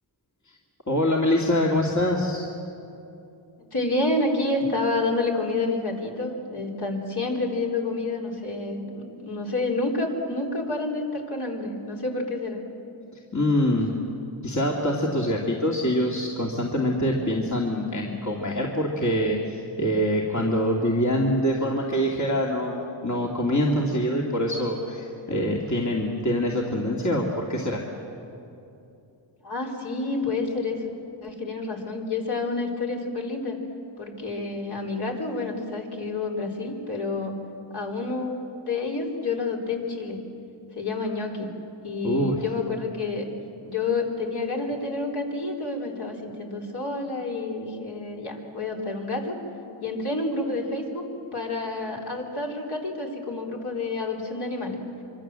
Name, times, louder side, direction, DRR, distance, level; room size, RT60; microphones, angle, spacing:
voice 1, 0.9-2.5 13.3-13.9 14.4-27.8 42.0-42.4, equal, 35° left, -2 dB, 2.7 m, -24 dB
voice 2, 3.7-12.6 29.4-30.9 31.2-33.6 34.0-37.4 37.7-40.2 40.7-41.5 41.8-43.3 43.6-49.4 49.8-51.0 51.3-54.8, left 3 dB, 55° left, -1 dB, 4.5 m, -29 dB
25.5 x 24.5 x 7.7 m, 2.8 s
wide cardioid pair, 95°, 48 cm